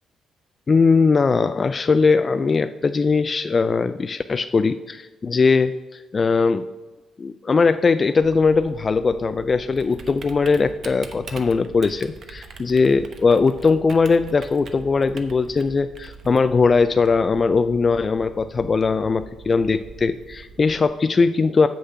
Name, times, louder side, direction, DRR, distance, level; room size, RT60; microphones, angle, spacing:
voice 1, 0.7-6.6 7.2-21.7, left 4 dB, 35° left, 10 dB, 0.3 m, -20 dB
Typing, 8.2-20.8, right 5 dB, 55° right, 1.0 m, -43 dB
7.7 x 6.5 x 5.6 m, 1.2 s
cardioid pair, 90°, 0 cm